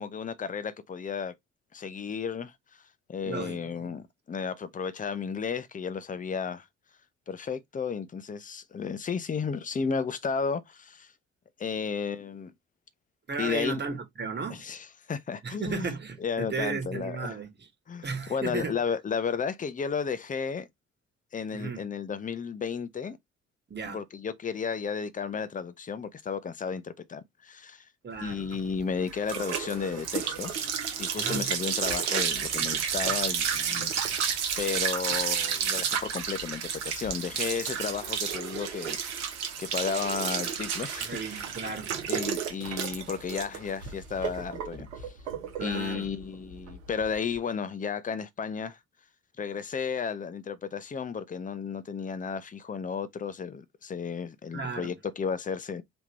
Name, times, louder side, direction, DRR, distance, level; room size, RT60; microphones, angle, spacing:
voice 1, 0.0-1.3 1.7-2.5 3.1-6.7 7.3-11.1 11.6-12.5 13.4-13.8 14.5-17.3 17.9-20.7 21.3-23.2 23.9-27.8 28.2-30.7 31.0-33.9 34.6-41.2 42.1-45.1 45.6-48.8 49.4-55.8, left 6 dB, 25° left, 0.7 m, -33 dB
voice 2, 3.2-4.0 13.3-14.6 15.4-17.7 18.0-18.7 21.5-21.8 23.7-24.0 28.0-28.5 31.1-31.5 37.7-37.9 41.0-42.0 45.6-46.1 54.5-54.9, right 5 dB, 30° right, 1.4 m, -35 dB
sound 1, 28.3-47.3, right 7 dB, 80° right, 0.9 m, -31 dB
3.6 x 2.9 x 3.0 m
figure-of-eight pair, 45°, 34 cm